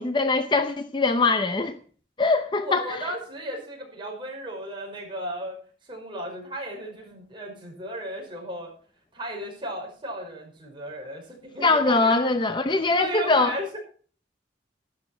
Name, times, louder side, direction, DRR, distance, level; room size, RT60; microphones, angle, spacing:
voice 1, 0.0-1.8 2.2-3.1 11.6-13.5, left 3 dB, 25° left, 0.7 m, -22 dB
voice 2, 2.6-5.6 5.9-8.7 9.1-12.2 13.0-13.8, right 1 dB, 25° right, 5.4 m, -35 dB
12.0 x 12.0 x 4.4 m
head